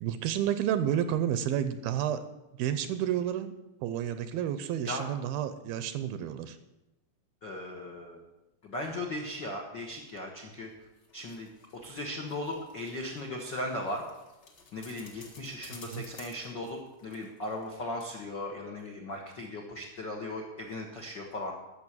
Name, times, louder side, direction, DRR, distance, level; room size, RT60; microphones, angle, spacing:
voice 1, 0.0-2.2 2.6-3.5 3.8-6.6 15.9-16.1, right 10 dB, 80° right, 11 dB, 2.4 m, -30 dB
voice 2, 7.4-8.2 8.6-10.7 11.1-11.5 11.8-14.0 14.7-21.5, left 1 dB, 70° left, 0 dB, 1.0 m, -37 dB
sound 1, 10.7-17.7 18.0-18.1, left 3 dB, 45° left, 1.5 m, -55 dB
13.0 x 6.8 x 8.9 m, 0.98 s
omnidirectional pair, 4.6 m